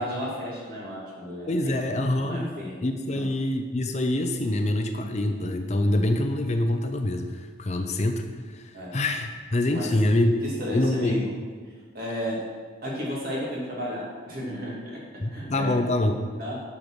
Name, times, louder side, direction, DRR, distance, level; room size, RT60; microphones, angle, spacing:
voice 1, 0.0-2.9 3.1-3.3 8.7-9.0 9.7-9.9 10.4-11.3 11.9-12.4 12.8-15.0 15.3-15.8 16.4-16.6, equal, 50° right, -5 dB, 2.8 m, -33 dB
voice 2, 1.5-2.4 2.8-10.3 10.7-11.2 15.2-16.2, left 1 dB, 35° left, 5 dB, 0.6 m, -25 dB
10.5 x 5.1 x 6.3 m, 1.5 s
head